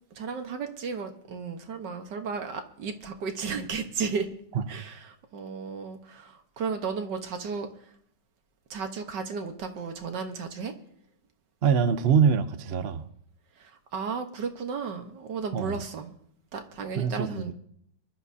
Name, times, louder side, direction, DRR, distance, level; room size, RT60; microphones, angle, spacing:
voice 1, 0.2-4.3 4.7-7.7 8.7-10.7 13.6-16.1 16.5-17.5, right 5 dB, 75° right, 6 dB, 1.9 m, -34 dB
voice 2, 11.6-13.0 15.5-15.8 16.9-17.5, right 6 dB, 50° right, 10 dB, 0.8 m, -24 dB
24.0 x 12.5 x 2.8 m, 0.69 s
omnidirectional pair, 1.9 m